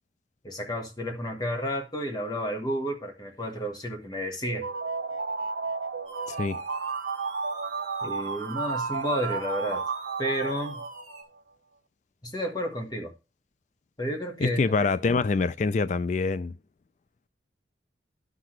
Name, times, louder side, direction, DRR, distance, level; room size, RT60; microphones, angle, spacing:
voice 1, 0.4-4.7 8.0-9.8 10.2-10.9 12.2-13.1 14.0-14.7, equal, 25° left, 1.3 m, -31 dB
sound 1, 4.4-11.2, right 4 dB, 75° right, 0.6 m, -33 dB
sound 2, 6.1-11.2, right 3 dB, 30° right, 2.1 m, -44 dB
voice 2, 6.3-6.6 14.4-16.5, left 4 dB, 40° left, 0.3 m, -25 dB
11.0 x 5.9 x 3.1 m
head